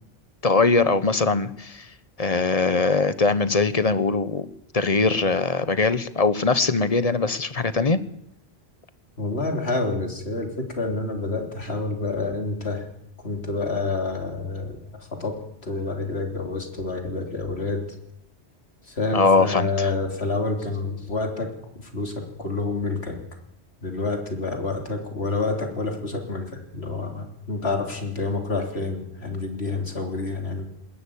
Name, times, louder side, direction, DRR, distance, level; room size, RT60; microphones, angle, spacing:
voice 1, 0.4-1.9 2.2-4.5 4.7-8.0 19.1-19.9, left 3 dB, 35° left, 14 dB, 1.1 m, -21 dB
voice 2, 9.2-12.9 13.2-14.8 15.1-17.9 18.8-23.2 23.8-30.6, left 3 dB, 75° left, 4 dB, 3.6 m, -28 dB
20.0 x 15.5 x 8.6 m, 0.76 s
omnidirectional pair, 1.1 m